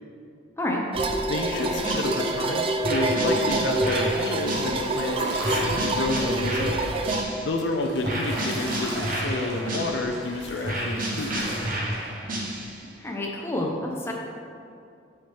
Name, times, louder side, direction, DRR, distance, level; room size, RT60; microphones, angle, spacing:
sound 1, 0.9-7.2, right 2 dB, 30° right, 0.3 m, -27 dB
voice 1, 1.3-6.9 7.4-11.4, left 2 dB, 60° left, 3 dB, 0.5 m, -30 dB
sound 2, 1.6-2.4 2.8-5.0 5.4-7.7 8.0-10.3 10.6-12.9, right 1 dB, 45° right, 0.9 m, -31 dB
sound 3, 4.5-5.9 7.5-12.3, right 1 dB, 60° right, 1.3 m, -36 dB
voice 2, 13.0-14.1, left 1 dB, 15° left, -1 dB, 0.6 m, -28 dB
6.2 x 5.7 x 3.4 m, 2.4 s
head